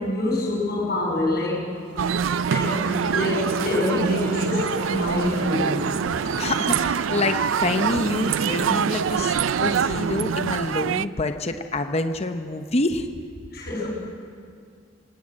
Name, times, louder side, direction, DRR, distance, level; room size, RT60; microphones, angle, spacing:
voice 1, 0.0-1.7 2.5-5.9 13.5-13.9, left 1 dB, 50° left, -2 dB, 7.4 m, -26 dB
sound 1, 1.7-10.4, right 1 dB, 55° right, 3.5 m, -37 dB
sound 2, 2.0-11.0, right 7 dB, 85° right, 0.4 m, -25 dB
voice 2, 6.4-13.1, left 2 dB, 35° left, 7 dB, 0.8 m, -27 dB
19.5 x 18.5 x 8.6 m, 2.2 s
head